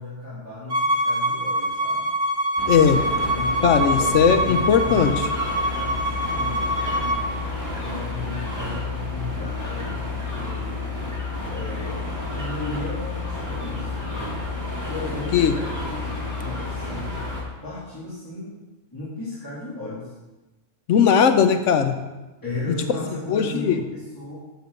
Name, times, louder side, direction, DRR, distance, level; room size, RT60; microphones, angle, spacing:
voice 1, 0.0-2.1 2.8-3.6 3.9-5.4 5.7-7.2 7.7-10.7 11.5-14.3 14.8-17.1 17.6-18.6 18.9-20.1 22.4-24.4, left 2 dB, 15° left, -10 dB, 2.4 m, -35 dB
Bowed string instrument, 0.7-7.2, right 1 dB, 35° right, 1.5 m, -24 dB
sound 1, 2.6-17.4, left 3 dB, 15° right, 2.2 m, -30 dB
voice 2, 2.7-3.0 3.6-5.1 15.3-15.5 20.9-21.9 23.3-23.8, left 7 dB, 75° left, 8 dB, 1.1 m, -18 dB
10.5 x 4.6 x 6.6 m, 1.1 s
omnidirectional pair, 1.3 m